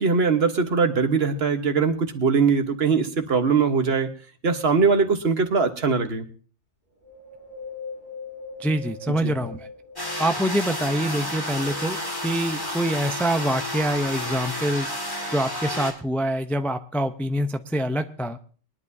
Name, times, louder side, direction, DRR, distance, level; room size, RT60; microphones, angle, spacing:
voice 1, 0.0-4.1 4.4-6.2 9.2-9.3, right 5 dB, 55° right, 7 dB, 1.4 m, -21 dB
Wind, 7.0-10.6 11.1-12.4 12.9-13.0, left 3 dB, 40° left, 3.3 m, -41 dB
voice 2, 8.6-9.7 10.2-12.0 12.2-14.9 15.3-18.4, right 1 dB, ahead, 7 dB, 0.3 m, -25 dB
sound 1, 10.0-15.9, left 1 dB, 20° left, 2.1 m, -31 dB
22.0 x 11.0 x 2.7 m, 0.41 s
omnidirectional pair, 1.3 m